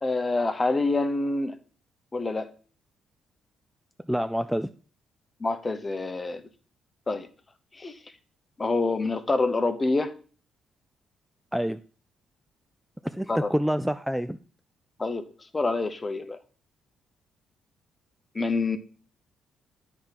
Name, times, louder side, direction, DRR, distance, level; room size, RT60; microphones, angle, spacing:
voice 1, 0.0-1.6 2.1-2.5 5.4-6.4 7.1-7.3 7.7-8.0 8.6-10.2 13.3-13.5 15.0-15.3 15.5-16.4 18.3-18.8, left 3 dB, 25° left, 10 dB, 0.8 m, -26 dB
voice 2, 4.1-4.7 11.5-11.8 13.0-14.4, equal, 5° right, 10 dB, 0.3 m, -27 dB
8.6 x 3.6 x 5.7 m, 0.40 s
cardioid pair, 80°, 0 cm